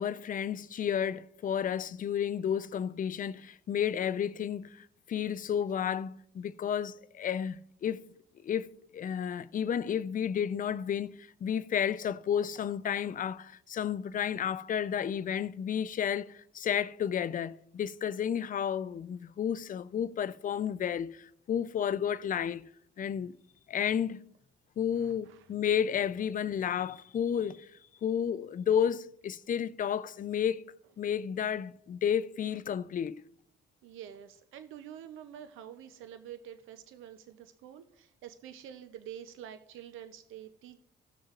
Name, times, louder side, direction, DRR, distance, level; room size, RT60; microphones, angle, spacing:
voice 1, 0.0-8.0 8.4-8.7 8.9-11.1 11.4-22.7 23.0-23.3 23.7-24.2 24.8-27.7 28.0-33.2, left 8 dB, 45° left, 0.5 m, -32 dB
voice 2, 25.0-25.5 33.8-40.8, right 10 dB, 85° right, 0.6 m, -47 dB
17.5 x 6.3 x 2.4 m
cardioid pair, 90°, 20 cm